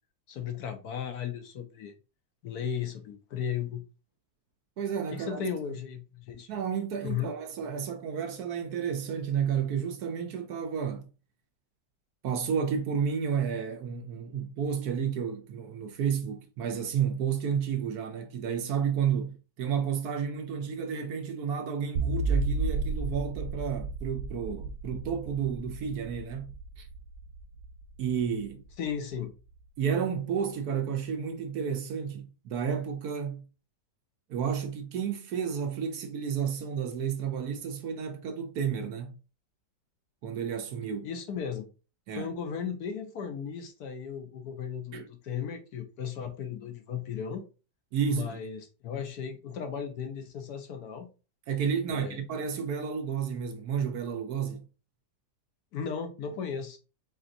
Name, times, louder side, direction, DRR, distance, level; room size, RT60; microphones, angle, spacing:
voice 1, 0.3-1.9 2.4-3.8 5.1-6.5 7.0-7.3 28.8-29.3 41.0-41.7 42.1-47.4 48.1-51.1 51.9-52.2 55.7-56.8, left 7 dB, 65° left, 1.1 m, -35 dB
voice 2, 4.8-5.4 6.5-11.1 12.2-26.9 28.0-28.6 29.8-33.4 34.3-39.2 40.2-41.1 42.1-42.3 44.9-45.1 47.9-48.4 51.5-54.6, right 7 dB, 70° right, 1.1 m, -31 dB
sound 1, 22.0-29.2, right 3 dB, 85° right, 1.2 m, -33 dB
4.2 x 3.9 x 2.6 m
omnidirectional pair, 1.9 m